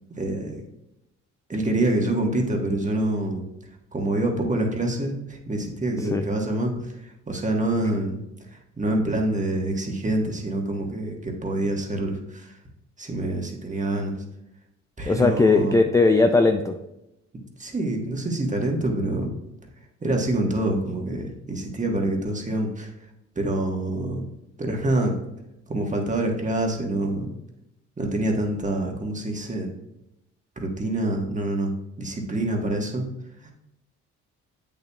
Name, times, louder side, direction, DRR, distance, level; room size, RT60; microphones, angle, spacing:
voice 1, 0.1-0.6 1.5-3.4 3.9-8.2 8.8-12.5 13.0-14.1 15.0-15.7 17.6-19.3 20.0-22.9 23.3-24.2 24.6-25.2 25.7-27.3 28.0-29.7 30.6-33.0 33.4-33.5, right 1 dB, 25° right, 1 dB, 1.4 m, -26 dB
voice 2, 15.1-16.8, left 3 dB, 10° left, 6 dB, 0.4 m, -19 dB
7.8 x 7.0 x 2.4 m, 0.87 s
cardioid pair, 90°, 30 cm